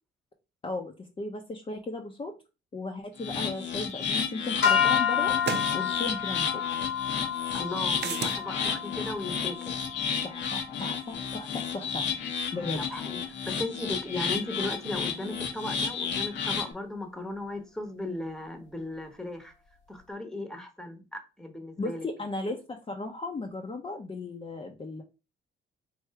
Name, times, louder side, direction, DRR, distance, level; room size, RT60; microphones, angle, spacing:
voice 1, 0.6-2.3 2.7-5.3 5.7-6.6 10.2-12.1 12.5-12.8 21.8-25.0, left 2 dB, 25° left, 0.6 m, -36 dB
sound 1, 3.2-16.7, left 6 dB, 65° left, 0.9 m, -32 dB
sound 2, 4.0-4.1 5.4-5.7 8.0-8.4, right 8 dB, 60° right, 0.6 m, -32 dB
sound 3, 4.6-11.0, left 8 dB, 80° left, 1.7 m, -30 dB
voice 2, 7.5-9.8 12.8-19.5 19.9-22.1, left 1 dB, ahead, 1.0 m, -37 dB
3.4 x 2.6 x 4.6 m
cardioid pair, 90°, 20 cm